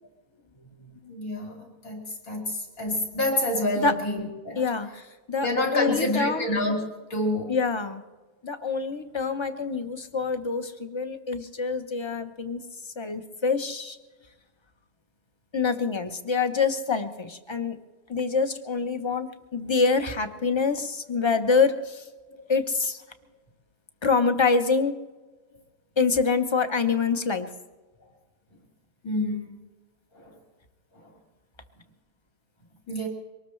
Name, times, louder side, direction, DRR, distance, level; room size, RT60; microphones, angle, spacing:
voice 1, 1.1-2.0 2.3-4.6 5.4-6.8 7.1-7.6 29.0-29.5 30.1-30.3 32.9-33.1, left 1 dB, 70° left, -1 dB, 3.1 m, -27 dB
voice 2, 4.6-6.6 7.5-8.0 8.4-12.6 13.0-14.0 15.5-17.8 18.1-22.0 22.5-23.0 24.0-24.9 26.0-27.5, left 4 dB, 25° left, 8 dB, 0.7 m, -26 dB
23.5 x 19.0 x 3.2 m, 1.2 s
omnidirectional pair, 1.6 m